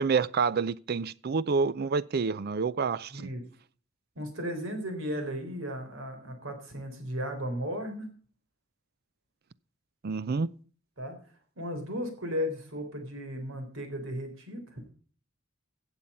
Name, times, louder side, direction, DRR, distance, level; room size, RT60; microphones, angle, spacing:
voice 1, 0.0-3.1 10.0-10.5, right 5 dB, 50° right, 0.5 m, -28 dB
voice 2, 3.1-3.4 4.2-8.1 11.0-11.2 11.6-14.8, equal, 75° right, 3.8 m, -35 dB
16.0 x 7.3 x 5.5 m
head